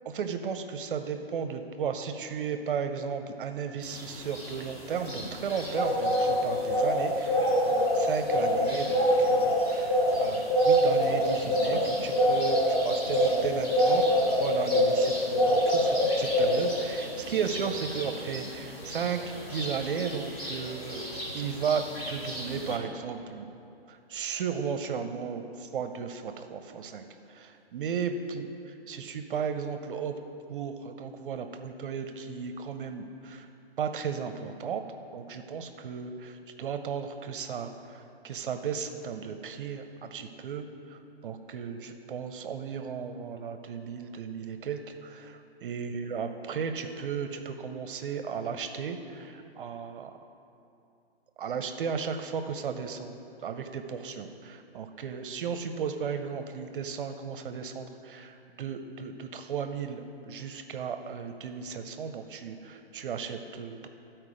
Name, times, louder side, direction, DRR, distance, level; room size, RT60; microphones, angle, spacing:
voice 1, 0.1-19.2 19.5-21.1 21.3-23.5 23.9-28.5 28.9-30.1 30.5-33.5 33.8-34.8 35.1-50.1 51.4-53.2 53.4-63.9, right 6 dB, 55° right, 7 dB, 0.5 m, -35 dB
sound 1, 3.9-22.8, equal, 25° left, 1.5 m, -26 dB
11.0 x 4.4 x 4.9 m, 2.7 s
hypercardioid pair, 160°, 31 cm